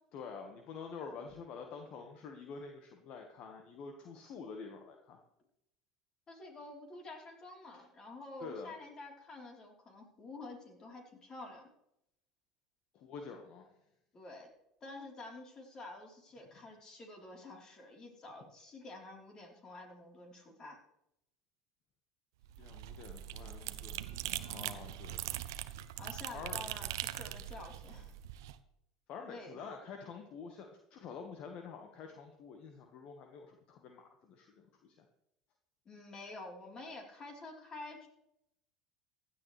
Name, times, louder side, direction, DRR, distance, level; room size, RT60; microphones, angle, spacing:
voice 1, 0.1-5.2 7.7-7.8 8.4-8.7 12.9-13.7 22.6-25.2 26.3-26.6 29.1-35.0, left 5 dB, 55° left, 4 dB, 1.5 m, -48 dB
voice 2, 6.3-11.6 14.1-14.5 14.8-20.8 25.3-25.4 26.0-28.1 29.3-29.6 35.9-38.1, left 2 dB, 35° left, 0 dB, 3.9 m, -49 dB
sound 1, 22.4-28.5, right 13 dB, 75° right, 0.7 m, -41 dB
16.0 x 11.0 x 3.3 m, 0.81 s
hypercardioid pair, 80°, 2 cm